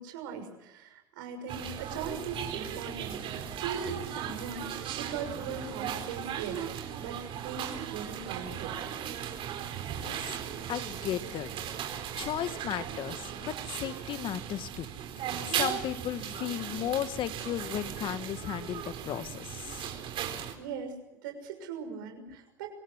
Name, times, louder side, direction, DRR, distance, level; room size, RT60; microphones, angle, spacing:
voice 1, 0.0-8.8 20.6-22.7, right 6 dB, 85° right, 5 dB, 6.3 m, -40 dB
sound 1, 1.5-20.6, right 9 dB, 55° right, 4.1 m, -37 dB
voice 2, 10.0-10.4 10.7-11.7 12.1-14.9 15.2-19.9, left 11 dB, 50° left, 12 dB, 1.6 m, -35 dB
26.0 x 18.0 x 9.7 m, 0.95 s
supercardioid pair, 95°, 11 cm